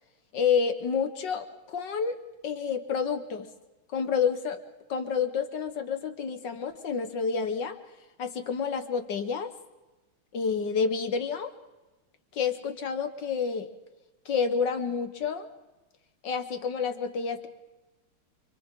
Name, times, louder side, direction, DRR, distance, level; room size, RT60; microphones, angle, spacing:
voice 1, 0.3-3.5 3.9-4.6 4.9-7.8 8.2-9.5 10.3-11.5 12.3-13.7 14.3-15.5 16.2-17.5, left 6 dB, 60° left, 8 dB, 1.9 m, -29 dB
29.0 x 26.5 x 3.8 m, 1.1 s
omnidirectional pair, 2.3 m